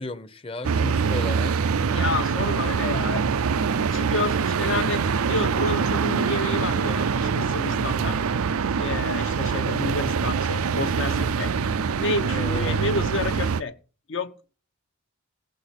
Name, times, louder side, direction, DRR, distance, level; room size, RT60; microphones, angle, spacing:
voice 1, 0.0-1.5 12.3-12.8, left 2 dB, 25° left, 0.8 m, -33 dB
sound 1, 0.6-13.6, right 5 dB, 80° right, 0.5 m, -24 dB
voice 2, 1.8-3.2 3.9-8.2 8.7-11.5 11.9-13.7 14.1-14.5, left 3 dB, 60° left, 0.8 m, -30 dB
16.5 x 6.5 x 5.8 m
head